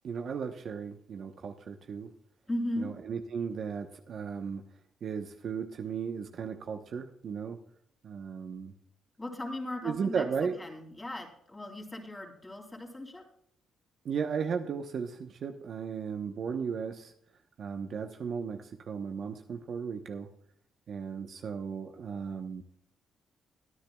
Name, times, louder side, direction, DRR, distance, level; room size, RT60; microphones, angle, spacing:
voice 1, 0.0-2.1 2.8-4.6 5.0-7.6 8.0-8.7 9.8-10.5 14.0-17.1 17.6-20.3 20.9-22.6, right 6 dB, 60° right, 5 dB, 1.0 m, -35 dB
voice 2, 2.5-2.9 9.2-13.2, left 1 dB, 15° left, 2 dB, 3.1 m, -37 dB
22.0 x 10.5 x 2.4 m, 0.67 s
cardioid pair, 90°, 0 cm